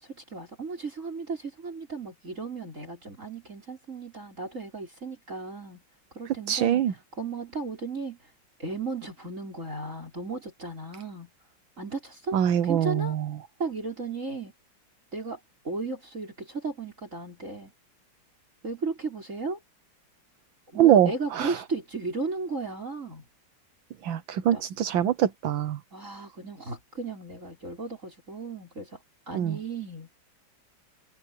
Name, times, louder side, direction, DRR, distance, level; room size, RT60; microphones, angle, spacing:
voice 1, 0.0-5.8 6.1-6.8 7.1-8.3 8.6-11.3 11.8-12.4 12.6-13.1 13.6-14.5 15.1-17.7 18.6-19.6 20.7-23.2 24.5-24.6 25.9-30.1, right 3 dB, 35° right, 5.8 m, -35 dB
voice 2, 6.5-6.9 12.3-13.3 20.8-21.5 24.0-25.8 29.3-29.6, right 10 dB, 75° right, 1.6 m, -23 dB
omnidirectional pair, 2.2 m